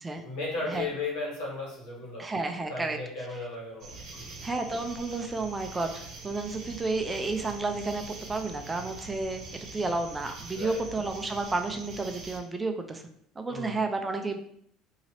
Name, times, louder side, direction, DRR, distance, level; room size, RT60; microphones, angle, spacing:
voice 1, 0.2-2.3 2.7-4.3 10.5-10.8 13.5-13.8, left 3 dB, 80° left, -3 dB, 1.4 m, -35 dB
voice 2, 2.2-3.0 3.3-3.4 4.4-9.4 9.7-13.0 13.4-14.4, right 3 dB, 20° right, 6 dB, 0.4 m, -31 dB
sound 1, 3.8-12.4, right 4 dB, 55° right, 0.9 m, -44 dB
2.8 x 2.8 x 2.9 m, 0.67 s
supercardioid pair, 90°, 0 cm